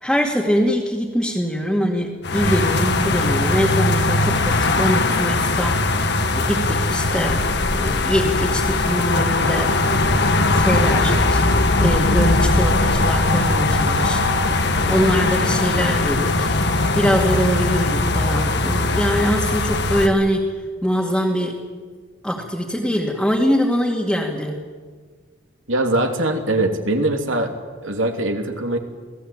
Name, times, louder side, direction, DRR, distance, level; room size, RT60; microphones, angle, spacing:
voice 1, 0.0-6.0 6.4-7.4 7.7-9.7 10.5-11.4 11.8-14.2 14.9-16.5 16.9-20.5 20.8-21.6 22.2-24.7, equal, ahead, -3 dB, 2.3 m, -22 dB
sound 1, 2.2-20.1, left 2 dB, 55° left, 1.6 m, -20 dB
voice 2, 25.7-27.5 27.8-28.8, right 1 dB, 75° right, 4 dB, 3.0 m, -21 dB
27.5 x 18.5 x 8.8 m, 1.5 s
head